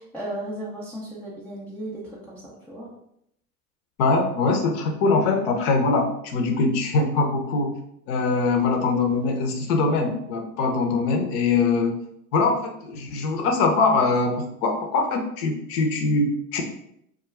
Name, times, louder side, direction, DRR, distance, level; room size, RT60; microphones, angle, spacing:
voice 1, 0.0-2.9 5.1-5.4, right 1 dB, 5° left, -7 dB, 0.4 m, -35 dB
voice 2, 4.0-7.8 8.1-12.0 12.3-16.6, left 3 dB, 50° left, 2 dB, 0.7 m, -22 dB
2.3 x 2.2 x 3.1 m, 0.75 s
hypercardioid pair, 90°, 45 cm